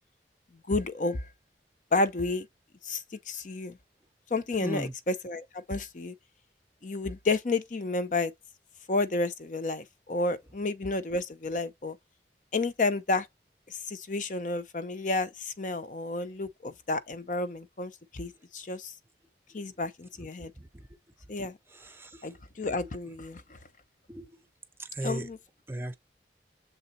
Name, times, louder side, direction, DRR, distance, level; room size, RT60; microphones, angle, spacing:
voice 1, 0.7-1.3 1.9-2.5 2.8-3.8 4.3-6.1 6.8-8.3 8.9-12.0 12.5-13.3 13.7-18.9 19.5-20.5 21.3-21.6 22.2-23.6 25.0-25.4, left 3 dB, 45° left, 0.6 m, -31 dB
voice 2, 4.6-4.9 20.2-20.9 21.7-22.4 24.1-24.3 24.8-25.3 25.7-26.0, right 1 dB, 15° right, 0.5 m, -37 dB
6.8 x 3.8 x 4.1 m
head